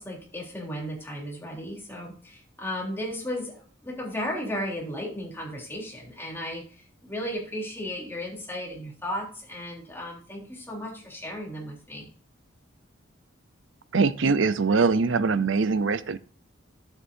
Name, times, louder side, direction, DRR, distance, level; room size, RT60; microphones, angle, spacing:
voice 1, 0.0-3.6 3.8-12.1, equal, 10° left, -3 dB, 3.4 m, -35 dB
voice 2, 13.9-16.2, right 4 dB, 70° right, 15 dB, 0.6 m, -22 dB
11.5 x 8.0 x 2.7 m, 0.40 s
head